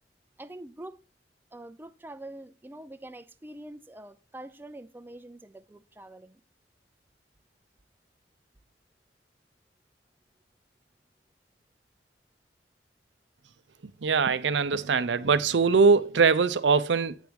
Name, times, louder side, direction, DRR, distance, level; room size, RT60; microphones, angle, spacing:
voice 1, 0.4-1.0 1.5-6.4, right 1 dB, 10° right, 0.5 m, -45 dB
voice 2, 13.8-17.2, right 5 dB, 90° right, 0.6 m, -22 dB
8.2 x 5.2 x 4.6 m
head